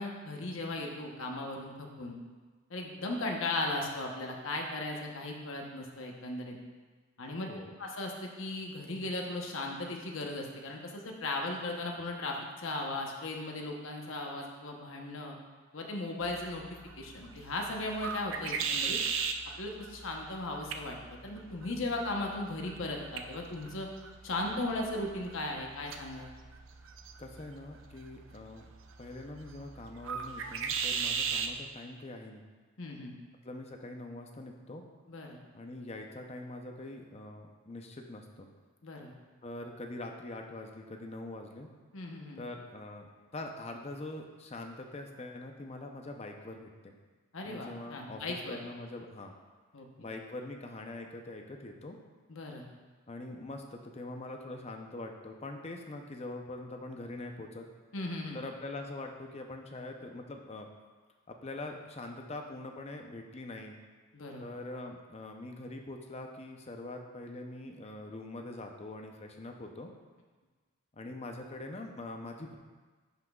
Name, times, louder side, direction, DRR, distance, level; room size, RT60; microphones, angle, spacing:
voice 1, 0.0-2.2 2.7-6.6 7.2-7.5 7.8-15.3 15.7-16.6 17.0-19.0 19.6-21.0 21.2-23.9 24.2-26.3 32.8-33.1 35.1-35.4 38.8-39.1 41.9-42.4 47.3-48.6 49.7-50.1 52.3-52.7 57.9-58.4 64.1-64.5, left 2 dB, 65° left, 1 dB, 0.9 m, -37 dB
sound 1, 16.2-31.6, right 6 dB, 60° right, 0.5 m, -39 dB
voice 2, 27.2-28.7 29.0-32.4 33.4-34.8 35.5-38.5 39.4-41.7 42.4-46.9 47.5-49.3 50.0-52.0 53.1-57.7 58.3-60.7 61.3-63.8 64.4-69.9 70.9-72.6, left 2 dB, 30° left, 3 dB, 0.6 m, -43 dB
10.0 x 6.0 x 2.3 m, 1.4 s
head